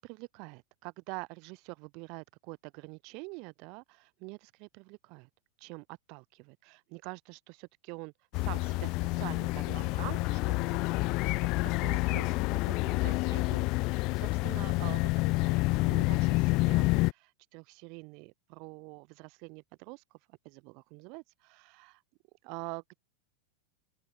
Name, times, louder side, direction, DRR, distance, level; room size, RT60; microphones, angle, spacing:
voice 1, 0.0-5.3 5.6-11.3 11.8-12.3 12.6-15.1 15.4-20.0 20.3-22.0 22.4-23.0, right 31 dB, 45° right, 1.7 m, -46 dB
sound 1, 8.3-17.1, left 24 dB, 40° left, 0.5 m, -28 dB
open air
figure-of-eight pair, 90°, 0 cm